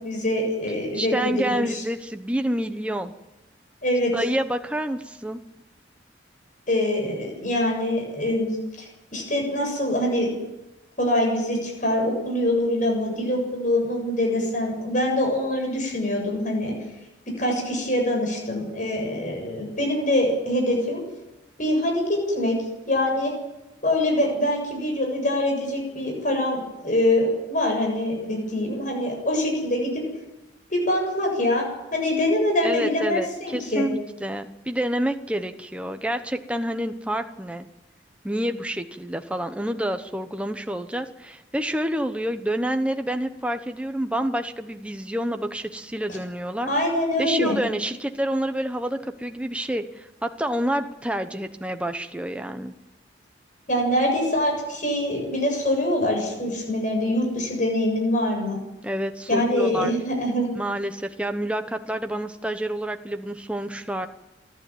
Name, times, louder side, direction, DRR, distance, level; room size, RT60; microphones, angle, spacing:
voice 1, 0.0-1.8 3.8-4.1 6.7-8.5 8.8-8.9 9.1-10.3 11.0-16.8 17.4-21.0 21.6-22.5 22.9-23.3 23.8-29.9 30.7-33.9 46.7-47.6 53.7-58.6 59.3-60.5, left 1 dB, 45° left, 1 dB, 7.6 m, -24 dB
voice 2, 0.9-3.1 4.1-5.4 32.6-37.7 38.2-46.7 47.2-52.7 58.8-59.9 60.5-64.1, right 1 dB, 5° right, 6 dB, 1.0 m, -28 dB
28.0 x 12.0 x 9.3 m, 0.97 s
head